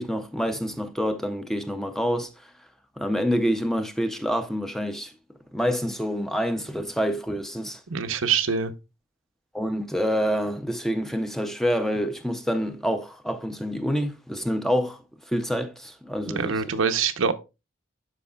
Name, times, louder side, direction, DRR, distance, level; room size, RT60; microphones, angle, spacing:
voice 1, 0.0-2.5 3.0-5.1 5.5-7.8 9.5-15.0 15.3-16.7, equal, ahead, 0.5 m, -27 dB
voice 2, 7.9-8.7 16.4-17.3, right 6 dB, 90° right, 0.7 m, -24 dB
12.0 x 4.8 x 2.3 m
head